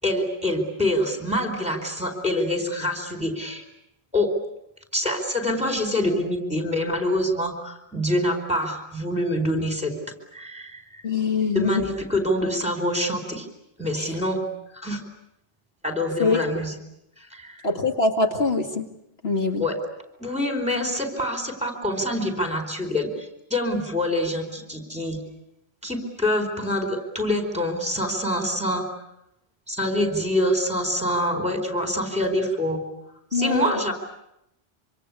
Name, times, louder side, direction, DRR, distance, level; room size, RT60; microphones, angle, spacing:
voice 1, 0.0-3.6 4.1-4.3 4.9-9.9 10.3-11.0 11.5-13.5 13.8-14.4 14.7-15.0 15.8-16.7 17.3-17.7 19.6-19.8 20.2-25.2 25.8-28.8 29.7-32.8 33.3-33.9, left 1 dB, 5° right, 5 dB, 4.3 m, -25 dB
voice 2, 11.0-11.8 14.0-14.1 16.2-16.4 17.6-18.9 19.2-19.6 33.3-33.7, left 4 dB, 75° left, 4 dB, 2.3 m, -23 dB
26.0 x 25.5 x 8.4 m, 0.84 s
omnidirectional pair, 1.1 m